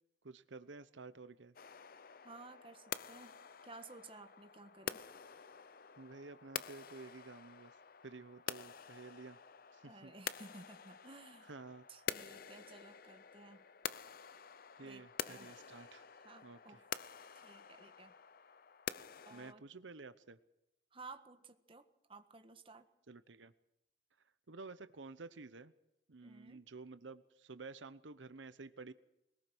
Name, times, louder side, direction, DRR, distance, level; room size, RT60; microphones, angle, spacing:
voice 1, 0.2-1.5 6.0-7.8 8.0-9.4 9.7-10.1 11.5-11.9 14.8-16.0 16.4-16.8 19.3-20.4 23.1-23.5 24.5-25.7 26.1-28.9, right 3 dB, 85° right, 12 dB, 0.9 m, -52 dB
sound 1, 1.6-19.5, left 8 dB, 50° left, 0.7 m, -48 dB
voice 2, 2.2-5.1 9.8-11.5 11.9-13.7 14.8-15.5 16.2-16.8 17.3-18.2 19.2-19.6 20.9-22.9 26.2-26.6, right 3 dB, 30° right, 7 dB, 1.5 m, -55 dB
22.0 x 19.5 x 6.2 m, 0.86 s
head